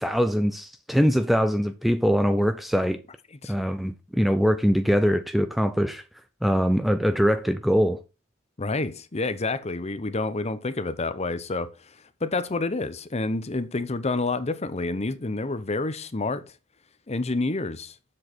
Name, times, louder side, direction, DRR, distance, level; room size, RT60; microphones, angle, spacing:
voice 1, 0.0-3.0 3.5-6.0 6.4-8.0, equal, ahead, 0.4 m, -22 dB
voice 2, 8.6-11.7 12.2-16.4 17.1-17.9, left 3 dB, 30° left, 0.8 m, -28 dB
7.7 x 6.3 x 4.4 m
head